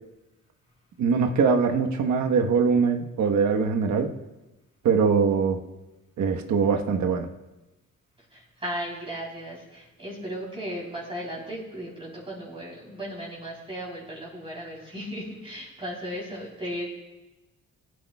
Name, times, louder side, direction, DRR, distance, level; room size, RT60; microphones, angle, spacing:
voice 1, 1.0-4.1 4.8-5.6 6.2-7.3, right 5 dB, 70° right, 3 dB, 1.3 m, -22 dB
voice 2, 8.3-16.9, equal, 20° right, -5 dB, 3.6 m, -36 dB
20.0 x 9.7 x 2.3 m, 1.0 s
cardioid pair, 90°, 30 cm